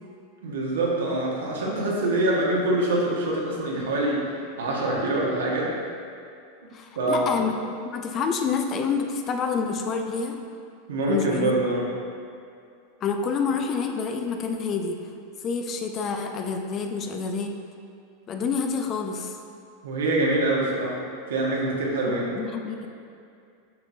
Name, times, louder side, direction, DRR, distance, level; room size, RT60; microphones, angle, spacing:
voice 1, 0.4-4.2 4.6-5.7 6.9-7.4 10.9-11.8 19.8-21.0 21.3-22.3, right 2 dB, 90° right, -4 dB, 1.5 m, -25 dB
voice 2, 6.7-10.4 11.1-11.6 13.0-15.0 15.4-17.6 18.3-19.4 22.1-22.9, left 5 dB, 35° left, 4 dB, 0.6 m, -28 dB
7.6 x 5.9 x 2.7 m, 2.4 s
hypercardioid pair, 120°, 0 cm